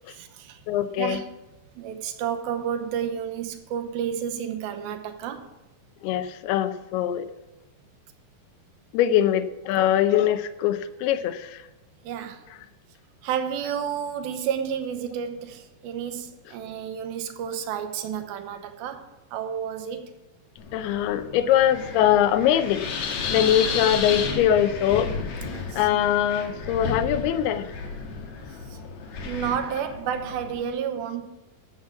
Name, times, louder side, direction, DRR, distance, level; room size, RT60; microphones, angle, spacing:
voice 1, 0.1-0.6 1.0-1.3 1.8-5.5 12.0-12.4 13.2-20.1 23.4-23.5 25.4-25.9 28.7-28.8 29.2-31.3, right 8 dB, 80° right, 7 dB, 2.7 m, -31 dB
voice 2, 0.7-1.2 6.0-7.3 8.9-11.6 20.7-22.9 23.3-25.1 25.7-27.7, left 10 dB, 90° left, 11 dB, 2.7 m, -22 dB
Wind, 20.6-30.7, left 5 dB, 60° left, 2.3 m, -33 dB
14.0 x 6.3 x 7.1 m, 1.0 s
omnidirectional pair, 4.5 m